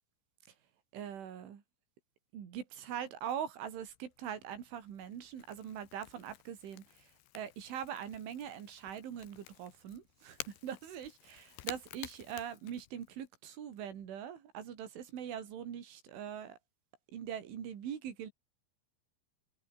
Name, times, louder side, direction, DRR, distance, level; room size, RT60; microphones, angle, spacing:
voice 1, 0.9-1.6 2.3-16.6 17.1-18.3, right 9 dB, 80° right, 5.8 m, -42 dB
Crackle / Crack, 3.7-13.3, left 14 dB, 70° left, 3.1 m, -52 dB
omnidirectional pair, 5.5 m